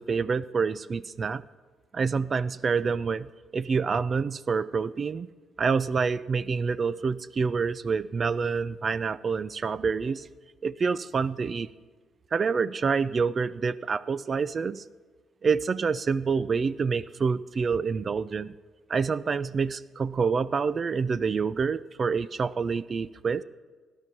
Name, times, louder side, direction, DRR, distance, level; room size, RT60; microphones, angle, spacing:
voice 1, 0.0-1.4 1.9-3.3 3.5-5.3 5.6-10.3 10.6-11.7 12.3-14.8 15.4-18.5 18.9-23.4, right 5 dB, 40° right, 17 dB, 0.5 m, -27 dB
16.0 x 10.5 x 7.0 m, 1.4 s
cardioid pair, 90°, 0 cm